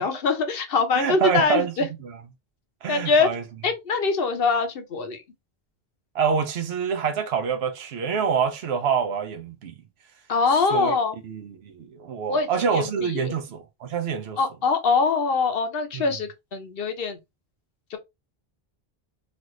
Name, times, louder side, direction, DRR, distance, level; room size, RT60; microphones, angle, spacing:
voice 1, 0.0-1.9 2.9-3.3 3.6-5.2 10.3-11.2 12.3-13.3 14.4-17.2 17.9-18.0, left 4 dB, 65° left, 0.9 m, -23 dB
voice 2, 1.0-2.2 2.8-3.4 6.1-9.7 10.7-11.0 11.2-14.4 15.9-16.0, right 6 dB, 80° right, 0.9 m, -26 dB
3.1 x 2.5 x 3.0 m
omnidirectional pair, 1.0 m